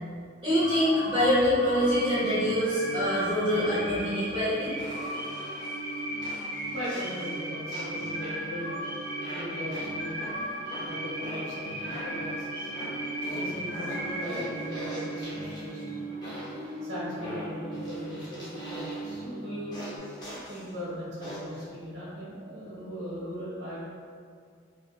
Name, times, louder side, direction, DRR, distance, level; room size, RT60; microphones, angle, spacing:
voice 1, 0.4-4.7, equal, 25° right, -12 dB, 0.9 m, -25 dB
sound 1, 0.6-20.0, right 1 dB, 60° left, 0.9 m, -36 dB
sound 2, 4.8-5.7 6.2-7.4 7.7-8.7 9.2-10.3 10.7-12.3 12.7-15.8 16.2-16.7 17.2-19.2 19.7-20.7 21.2-21.6, equal, 20° left, 0.6 m, -42 dB
voice 2, 6.7-8.7 9.3-10.3 10.8-12.7 13.3-16.0 16.8-19.8 20.4-23.9, equal, 60° right, -10 dB, 1.4 m, -38 dB
3.7 x 2.4 x 2.4 m, 2.2 s
head